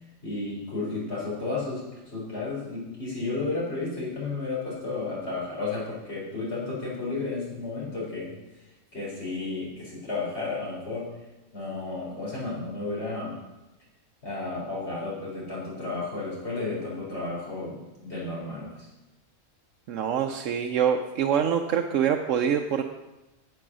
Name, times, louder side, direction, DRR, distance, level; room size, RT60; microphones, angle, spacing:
voice 1, 0.2-8.4 8.9-11.1 11.5-13.4 14.2-18.9, left 3 dB, 55° left, -6 dB, 4.5 m, -32 dB
voice 2, 19.9-22.8, right 8 dB, 80° right, 4 dB, 1.0 m, -25 dB
9.4 x 7.9 x 6.2 m, 1.0 s
omnidirectional pair, 1.3 m